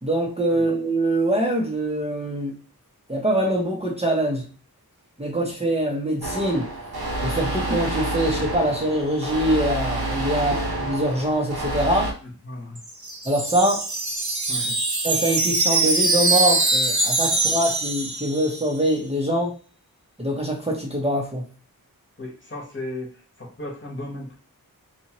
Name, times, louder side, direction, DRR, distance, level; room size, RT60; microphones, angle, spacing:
voice 1, 0.0-2.5 3.1-4.4 5.2-6.7 7.2-12.1 13.2-13.8 15.0-19.6 20.2-21.4, right 1 dB, 15° right, -2 dB, 0.7 m, -24 dB
sound 1, 6.2-12.1, right 1 dB, 90° right, 0.6 m, -28 dB
voice 2, 12.5-12.8 14.5-14.8 22.2-23.1 23.4-24.4, left 1 dB, 30° left, -1 dB, 1.1 m, -35 dB
Wind chime, 12.8-18.8, right 2 dB, 50° right, 0.7 m, -23 dB
2.7 x 2.4 x 2.9 m, 0.37 s
wide cardioid pair, 40°, 36 cm